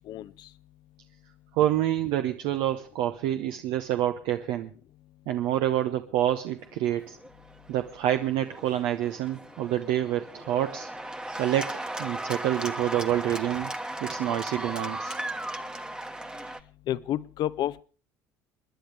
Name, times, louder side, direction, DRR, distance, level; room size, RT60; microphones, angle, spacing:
voice 1, 0.1-0.5 16.9-17.8, left 12 dB, 60° left, 17 dB, 0.6 m, -30 dB
voice 2, 1.5-4.7 5.3-7.2 7.7-10.9 11.4-13.7 14.0-15.1, right 12 dB, 70° right, 7 dB, 0.8 m, -27 dB
Cheering / Applause, 6.9-16.6, right 1 dB, 10° right, 1.2 m, -37 dB
29.0 x 10.5 x 3.4 m, 0.38 s
hypercardioid pair, 75°, 8 cm